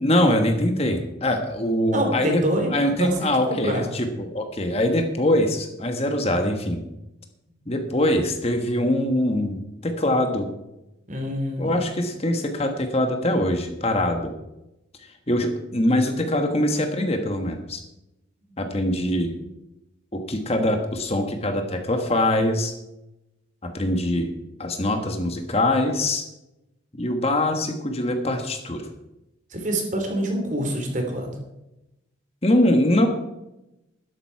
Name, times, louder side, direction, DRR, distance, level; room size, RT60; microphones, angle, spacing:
voice 1, 0.0-2.4 2.7-6.8 7.7-10.5 11.6-14.3 15.3-17.8 18.6-19.3 20.1-22.7 23.6-24.3 24.6-26.2 27.0-28.9 32.4-33.1, left 1 dB, 30° left, 5 dB, 1.4 m, -23 dB
voice 2, 1.9-3.9 11.1-11.8 29.5-31.3, right 1 dB, 40° right, 3 dB, 3.1 m, -26 dB
12.5 x 11.5 x 4.7 m, 0.91 s
head